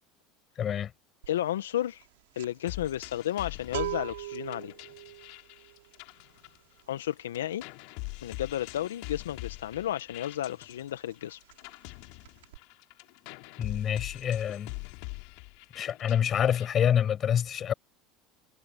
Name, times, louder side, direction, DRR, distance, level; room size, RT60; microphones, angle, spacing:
voice 1, 0.6-0.9 13.6-14.7 15.7-17.7, left 9 dB, 40° left, 7.7 m, -27 dB
sound 1, 1.2-1.5 1.8-10.3 10.6-10.8 11.1-11.9 12.2-12.6, right 17 dB, 75° right, 5.3 m, -41 dB
voice 2, 1.3-2.1 2.3-4.7 6.9-7.6 8.2-11.4, left 12 dB, 85° left, 1.2 m, -32 dB
sound 2, 2.7-7.1 7.3-16.7, left 33 dB, 65° left, 5.3 m, -43 dB
hypercardioid pair, 80°, 0 cm